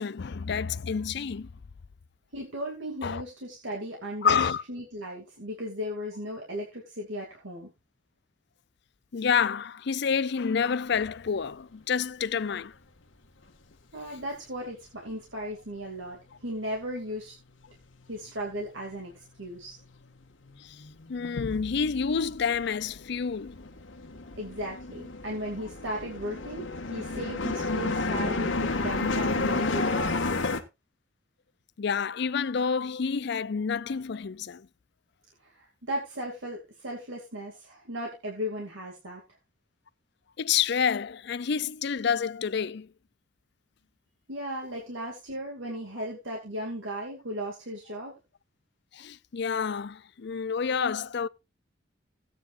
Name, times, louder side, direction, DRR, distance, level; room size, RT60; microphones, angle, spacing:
voice 1, 0.0-1.5 3.0-3.2 4.2-4.6 9.1-12.7 20.6-20.8 21.1-23.7 31.8-34.7 40.4-42.9 48.9-51.3, left 6 dB, 60° left, 0.5 m, -28 dB
voice 2, 2.3-7.7 13.9-17.3 18.1-19.8 24.4-30.1 35.4-39.2 44.3-48.2, equal, 80° right, 2.6 m, -36 dB
sound 1, 17.7-17.8 18.0-19.2 19.5-30.6, left 3 dB, 80° left, 1.5 m, -31 dB
16.5 x 9.1 x 2.6 m
head